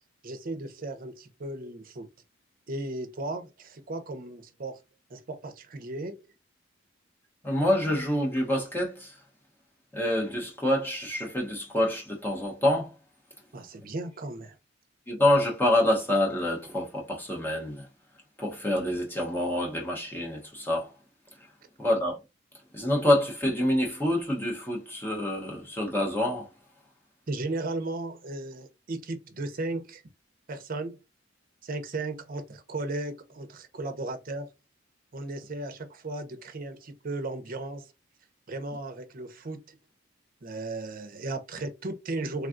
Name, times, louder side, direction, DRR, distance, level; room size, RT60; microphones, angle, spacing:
voice 1, 0.2-2.1 2.7-4.8 5.1-6.2 13.5-14.6 27.3-30.0 30.5-31.0 31.6-34.5 35.1-37.9 38.5-39.8 40.4-42.5, right 2 dB, 50° right, 0.6 m, -35 dB
voice 2, 7.4-9.1 9.9-12.9 15.1-17.9 18.4-20.9 21.8-22.2 22.7-26.5, left 1 dB, 10° left, 0.8 m, -26 dB
3.5 x 2.3 x 2.5 m
head